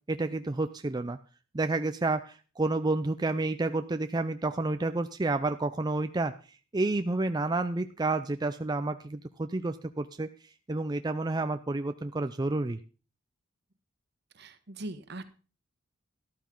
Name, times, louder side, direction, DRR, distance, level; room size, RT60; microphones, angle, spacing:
voice 1, 0.1-1.2 1.5-6.3 6.7-10.3 10.7-12.8, right 2 dB, 20° right, 9 dB, 0.5 m, -30 dB
voice 2, 14.3-15.2, right 2 dB, 60° right, 11 dB, 1.4 m, -40 dB
13.0 x 12.5 x 3.8 m, 0.35 s
head